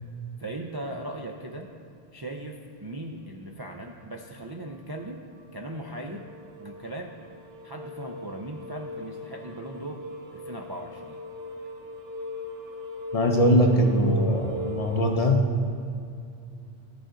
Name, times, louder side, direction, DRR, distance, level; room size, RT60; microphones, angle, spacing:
voice 1, 0.4-1.7 2.1-5.2 5.5-6.3 6.6-7.1 7.6-10.0 10.3-11.2, right 1 dB, 35° right, 0 dB, 0.4 m, -38 dB
sound 1, 4.8-4.9 5.3-15.2, left 2 dB, 70° right, 1.1 m, -39 dB
voice 2, 13.1-15.4, equal, 40° left, 3 dB, 0.7 m, -21 dB
14.0 x 5.1 x 3.8 m, 2.5 s
omnidirectional pair, 1.1 m